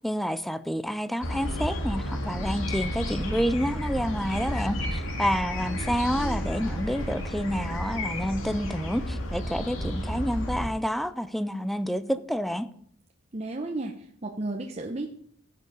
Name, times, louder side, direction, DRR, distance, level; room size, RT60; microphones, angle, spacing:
voice 1, 0.0-12.7, equal, ahead, 13 dB, 0.4 m, -29 dB
sound 1, 1.2-10.7, equal, 85° left, 2.3 m, -31 dB
voice 2, 13.3-15.1, right 2 dB, 30° right, 2 dB, 0.8 m, -33 dB
15.5 x 6.6 x 5.4 m, 0.65 s
head